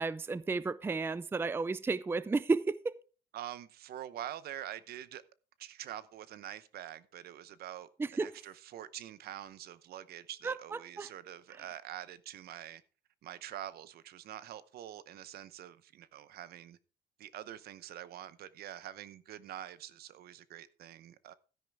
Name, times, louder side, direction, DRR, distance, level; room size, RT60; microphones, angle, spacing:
voice 1, 0.0-2.9 8.0-8.3 10.4-10.5 11.0-11.1, right 4 dB, 15° right, 0.4 m, -32 dB
voice 2, 3.3-5.2 5.6-12.8 13.2-16.8 17.2-21.3, right 12 dB, 65° right, 0.8 m, -45 dB
13.0 x 10.0 x 3.5 m
cardioid pair, 110°, 17 cm